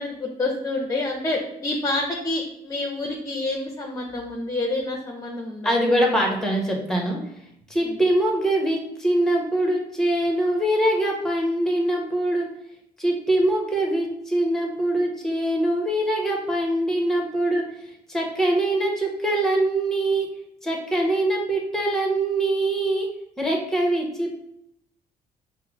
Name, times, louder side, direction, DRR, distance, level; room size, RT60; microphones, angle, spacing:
voice 1, 0.0-5.7 7.8-8.0, left 2 dB, 20° left, 1 dB, 0.6 m, -28 dB
voice 2, 5.6-7.2 7.7-12.5 13.0-17.6 18.1-20.3 20.6-23.1 23.4-24.3, right 1 dB, 5° left, 0 dB, 0.9 m, -23 dB
5.5 x 2.0 x 2.9 m, 0.77 s
cardioid pair, 105°, 16 cm